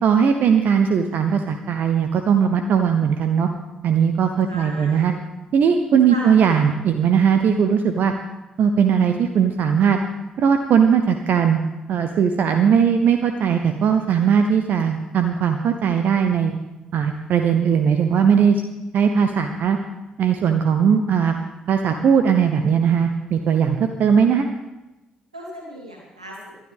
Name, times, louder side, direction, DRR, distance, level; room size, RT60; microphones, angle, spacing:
voice 1, 0.0-3.5 3.8-5.1 5.5-8.1 8.6-10.0 10.4-11.6 11.9-16.6 16.9-18.6 18.9-19.8 20.2-21.4 21.7-24.5, right 7 dB, 55° right, 7 dB, 0.8 m, -19 dB
voice 2, 4.5-5.1 6.1-6.4 25.3-26.5, equal, 90° right, -2 dB, 2.5 m, -35 dB
20.5 x 12.0 x 3.6 m, 1.0 s
figure-of-eight pair, 40°, 3 cm